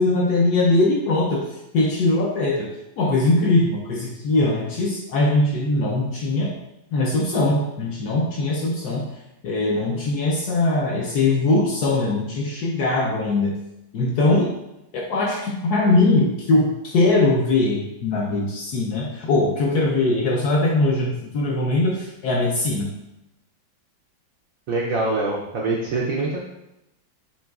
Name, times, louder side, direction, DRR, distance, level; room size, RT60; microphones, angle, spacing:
voice 1, 0.0-1.4 1.7-2.7 3.0-6.5 6.9-9.1 9.4-13.5 13.9-14.5 14.9-22.9, left 2 dB, 70° left, -1 dB, 0.9 m, -21 dB
voice 2, 24.7-26.4, right 2 dB, 90° right, -2 dB, 0.7 m, -24 dB
7.2 x 3.0 x 2.3 m, 0.89 s
omnidirectional pair, 2.2 m